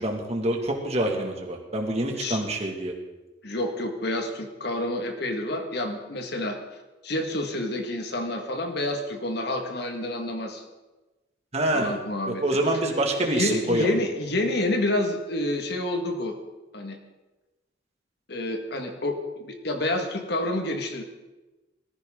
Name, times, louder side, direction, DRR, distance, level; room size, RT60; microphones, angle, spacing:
voice 1, 0.0-2.9 11.5-12.0 12.3-14.0, right 1 dB, 35° right, 2 dB, 2.2 m, -26 dB
voice 2, 3.4-6.6 7.0-10.6 11.7-12.4 13.2-16.4 16.7-17.0 18.3-21.0, left 1 dB, 60° left, 4 dB, 1.9 m, -28 dB
19.0 x 14.5 x 3.8 m, 1.1 s
head